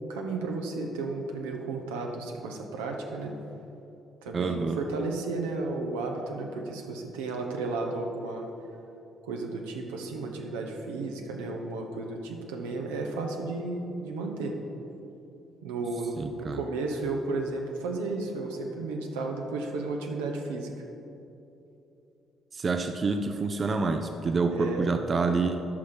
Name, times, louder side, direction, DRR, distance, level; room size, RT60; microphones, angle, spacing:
voice 1, 0.1-3.3 4.2-8.5 9.2-14.5 15.6-20.7 24.5-24.9, right 3 dB, 80° right, 2 dB, 0.9 m, -33 dB
voice 2, 4.3-4.8 16.2-16.6 22.5-25.6, right 4 dB, 40° right, 6 dB, 0.5 m, -27 dB
11.5 x 6.1 x 4.4 m, 2.9 s
hypercardioid pair, 45°, 0 cm